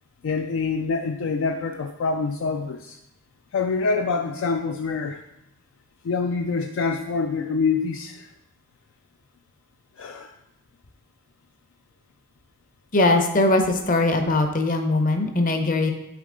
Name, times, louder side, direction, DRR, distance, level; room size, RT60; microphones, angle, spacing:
voice 1, 0.2-3.0 3.5-5.2 6.0-8.3 10.0-10.3, left 4 dB, 60° left, 5 dB, 0.3 m, -26 dB
voice 2, 12.9-15.9, left 2 dB, 40° left, 5 dB, 0.7 m, -21 dB
7.0 x 4.3 x 3.7 m, 0.87 s
head